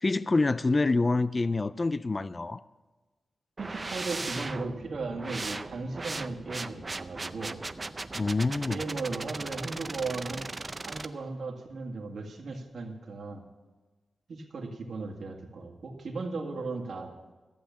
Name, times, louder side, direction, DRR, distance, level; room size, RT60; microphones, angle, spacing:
voice 1, 0.0-2.6 8.1-8.8, left 3 dB, 30° left, 17 dB, 0.3 m, -26 dB
sound 1, 3.6-11.1, right 3 dB, 30° right, 0.5 m, -38 dB
voice 2, 3.6-7.6 8.7-10.5 10.9-13.4 14.3-17.1, right 3 dB, 70° right, 2 dB, 1.9 m, -36 dB
14.5 x 7.9 x 6.9 m, 1.3 s
wide cardioid pair, 110°, 0 cm